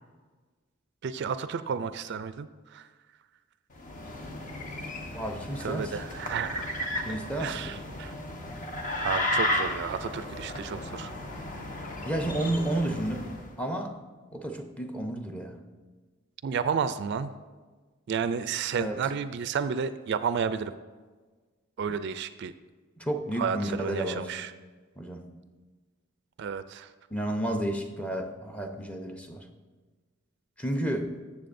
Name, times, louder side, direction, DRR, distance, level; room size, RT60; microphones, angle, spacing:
voice 1, 1.0-2.9 5.6-8.1 9.0-11.1 16.4-17.3 18.1-20.7 21.8-22.5 23.3-24.5 26.4-26.9, right 6 dB, 55° right, 12 dB, 0.3 m, -32 dB
sound 1, 3.7-13.5, left 1 dB, 40° left, 0.9 m, -34 dB
voice 2, 5.1-6.0 7.0-7.8 12.0-13.3 13.6-14.0 14.3-15.6 18.8-19.0 23.0-24.3 25.0-25.3 27.1-29.4 30.6-31.1, right 1 dB, 5° left, 4 dB, 0.7 m, -31 dB
14.0 x 7.3 x 2.6 m, 1.4 s
head